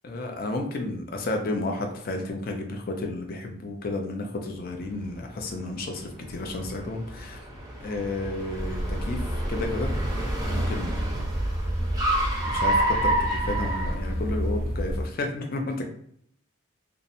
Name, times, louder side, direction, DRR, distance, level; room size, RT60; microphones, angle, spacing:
voice 1, 0.0-7.4 7.8-10.0 10.4-11.2 12.4-15.9, left 2 dB, 45° left, 3 dB, 0.4 m, -32 dB
Car, 4.7-14.6, right 1 dB, 20° right, 0.5 m, -30 dB
sound 1, 8.6-15.1, equal, 80° left, 0.9 m, -29 dB
2.7 x 2.0 x 2.6 m, 0.68 s
head